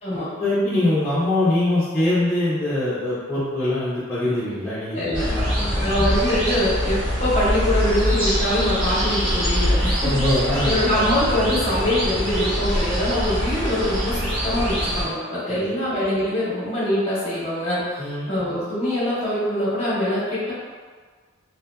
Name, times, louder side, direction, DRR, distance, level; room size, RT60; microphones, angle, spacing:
voice 1, 0.4-5.9 10.0-10.8 15.5-15.6 18.0-18.3, left 1 dB, 10° left, -13 dB, 0.5 m, -23 dB
voice 2, 4.9-5.3 5.8-10.4 10.6-20.5, left 1 dB, 30° left, -9 dB, 0.8 m, -24 dB
sound 1, 5.1-15.0, equal, 75° right, 1.0 m, -23 dB
2.6 x 2.6 x 2.2 m, 1.5 s
head